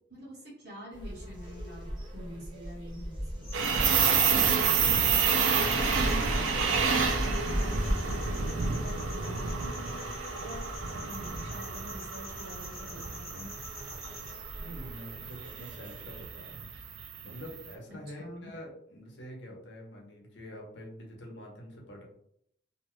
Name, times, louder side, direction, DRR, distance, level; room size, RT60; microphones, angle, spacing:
voice 1, 0.1-3.5 4.2-5.1 5.7-7.0 7.2-13.5 18.2-18.5, equal, 55° right, -5 dB, 1.2 m, -45 dB
sound 1, 0.9-16.3, equal, 25° right, 0.5 m, -38 dB
sound 2, 3.4-14.3, left 2 dB, 30° left, 0.8 m, -47 dB
sound 3, 3.5-17.6, right 6 dB, 75° right, 0.4 m, -30 dB
voice 2, 7.2-7.7 14.6-16.6 17.2-22.0, equal, 65° left, -1 dB, 0.8 m, -46 dB
2.7 x 2.2 x 3.0 m, 0.70 s
head